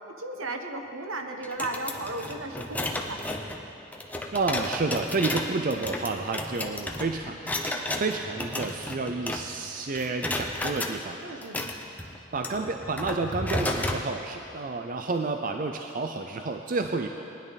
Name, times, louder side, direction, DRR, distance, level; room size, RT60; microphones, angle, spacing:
voice 1, 0.2-3.2 5.2-5.4 11.2-11.6, right 2 dB, 75° right, 5 dB, 1.1 m, -35 dB
sound 1, 1.4-9.7 9.9-10.9 11.4-14.0, left 1 dB, 5° left, 0.6 m, -33 dB
voice 2, 4.3-11.5 12.3-17.1, right 3 dB, 40° right, 5 dB, 0.5 m, -30 dB
19.5 x 10.5 x 4.1 m, 2.9 s
head